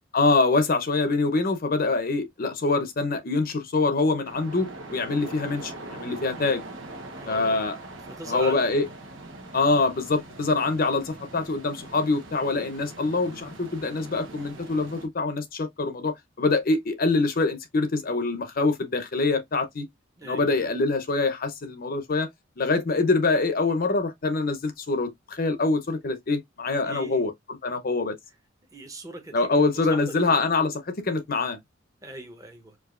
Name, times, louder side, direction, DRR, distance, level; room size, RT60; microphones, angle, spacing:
voice 1, 0.1-5.7 6.0-6.6 7.3-7.8 8.3-8.9 9.5-19.9 20.2-22.3 22.6-28.1 29.3-31.6, left 3 dB, 50° left, 0.7 m, -25 dB
sound 1, 4.2-15.1, right 2 dB, 90° right, 1.0 m, -42 dB
voice 2, 7.0-7.7 8.1-8.7 20.2-20.6 26.8-27.2 28.7-30.5 32.0-32.8, right 2 dB, 15° right, 0.9 m, -41 dB
4.7 x 2.6 x 2.4 m
head